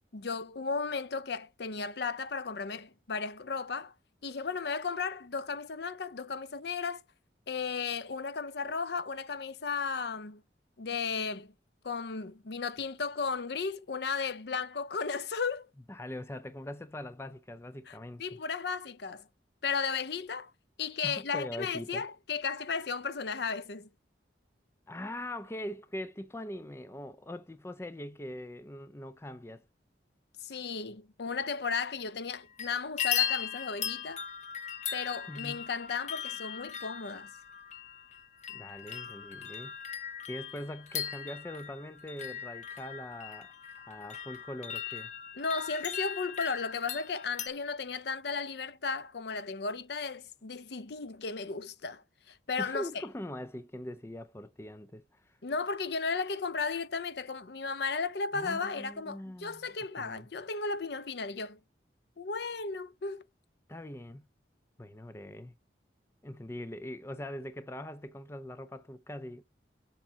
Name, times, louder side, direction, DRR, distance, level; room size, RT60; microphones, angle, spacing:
voice 1, 0.1-3.9 4.2-7.0 7.5-10.4 10.8-11.5 11.8-15.7 17.9-19.2 19.6-20.5 20.8-23.9 30.4-34.2 34.9-37.3 45.4-52.9 55.4-61.6 62.2-63.2, left 5 dB, 60° left, 0.6 m, -35 dB
voice 2, 15.9-18.4 21.0-22.0 24.9-29.7 35.3-35.6 38.5-39.8 40.3-43.5 43.9-45.1 52.6-55.4 58.3-59.7 60.0-60.3 63.7-64.3 64.8-65.5 66.2-69.4, left 1 dB, 15° left, 0.4 m, -42 dB
sound 1, 32.3-32.7 33.0-47.5, left 9 dB, 40° left, 1.0 m, -38 dB
7.3 x 5.8 x 5.6 m
head